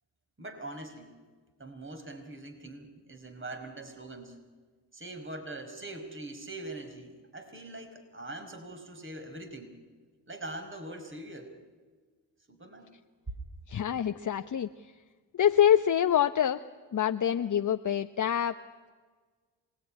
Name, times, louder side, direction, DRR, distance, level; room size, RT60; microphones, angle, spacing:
voice 1, 0.4-1.2 1.6-4.4 4.9-9.8 10.3-11.5 12.5-12.9, right 2 dB, 25° right, 6 dB, 5.3 m, -43 dB
voice 2, 13.7-14.7 15.3-16.6 16.9-18.6, left 10 dB, 40° left, 8 dB, 1.0 m, -25 dB
27.0 x 19.5 x 9.9 m, 1.5 s
supercardioid pair, 55°, 45 cm